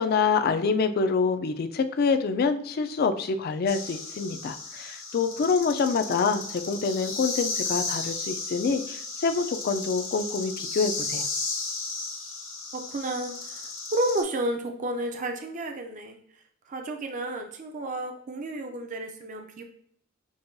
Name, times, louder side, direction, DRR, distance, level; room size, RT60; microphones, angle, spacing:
voice 1, 0.0-11.3, left 5 dB, 50° left, 9 dB, 0.3 m, -26 dB
sound 1, 3.7-14.2, left 4 dB, 70° left, 0.8 m, -34 dB
voice 2, 12.7-16.2 16.7-19.6, right 1 dB, 40° right, 4 dB, 0.4 m, -31 dB
6.1 x 2.2 x 2.6 m, 0.64 s
head